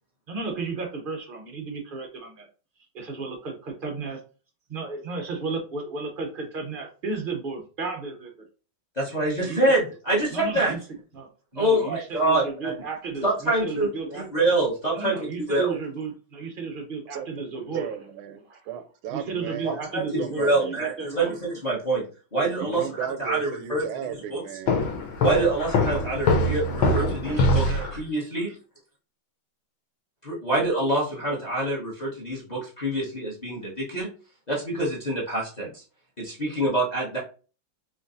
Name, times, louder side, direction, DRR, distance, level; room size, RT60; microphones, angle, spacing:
voice 1, 0.3-2.5 2.9-4.2 4.7-8.3 9.4-9.7 10.3-10.8 11.1-14.3 14.9-17.9 18.5-18.6 19.1-21.3 26.8-26.9 27.3-27.9, right 4 dB, 70° right, 0.5 m, -33 dB
voice 2, 9.0-10.7 11.6-12.7 13.2-15.7 19.6-22.0 22.3-23.8 24.3-24.4 25.2-28.6 30.2-34.1 34.5-35.8 36.2-37.2, right 2 dB, 30° left, 0.9 m, -26 dB
voice 3, 17.7-20.7 22.6-24.9, right 9 dB, 85° right, 1.4 m, -35 dB
Walk footsteps, 24.7-28.0, left 1 dB, 80° left, 1.6 m, -23 dB
5.0 x 3.0 x 2.6 m
omnidirectional pair, 2.2 m